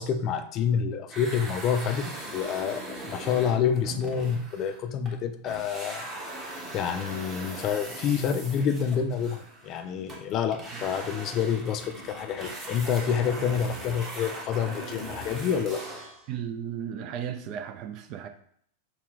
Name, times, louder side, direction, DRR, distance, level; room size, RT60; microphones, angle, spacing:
voice 1, 0.0-6.0 6.7-15.8, left 7 dB, 35° left, 0.4 m, -28 dB
sound 1, 1.1-5.2 5.5-16.3, right 1 dB, 25° right, 1.1 m, -40 dB
voice 2, 16.3-18.3, right 9 dB, 40° right, 0.4 m, -35 dB
5.7 x 2.2 x 3.6 m
figure-of-eight pair, 90°, 0 cm